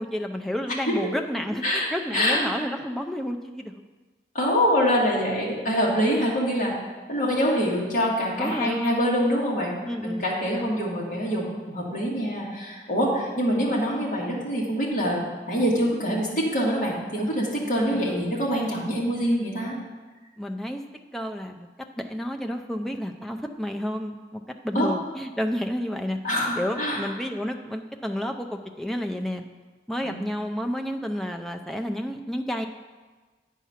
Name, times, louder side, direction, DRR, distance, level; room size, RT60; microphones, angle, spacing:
voice 1, 0.0-3.8 6.0-6.3 8.4-9.0 9.8-10.3 17.9-18.3 20.4-20.8 21.1-21.7 22.0-29.4 29.9-32.7, equal, ahead, 3 dB, 0.4 m, -31 dB
voice 2, 2.1-2.4 4.3-6.7 7.1-9.7 10.0-19.8 24.7-24.9 26.2-27.1 30.0-30.1, equal, 45° left, -4 dB, 1.9 m, -25 dB
9.2 x 4.7 x 5.7 m, 1.3 s
head